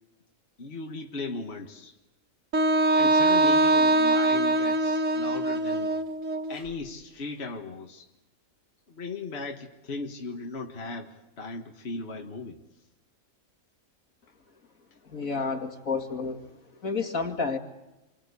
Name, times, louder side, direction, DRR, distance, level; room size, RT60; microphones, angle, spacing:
voice 1, 0.6-1.9 3.0-6.0 6.5-8.1 8.9-12.6, left 3 dB, 45° left, 1.8 m, -37 dB
Wind instrument woodwind instrument, 2.5-6.6, right 2 dB, 55° right, 1.6 m, -23 dB
voice 2, 15.1-16.4 16.8-17.6, left 4 dB, 65° left, 2.9 m, -30 dB
28.5 x 25.0 x 8.3 m
omnidirectional pair, 1.6 m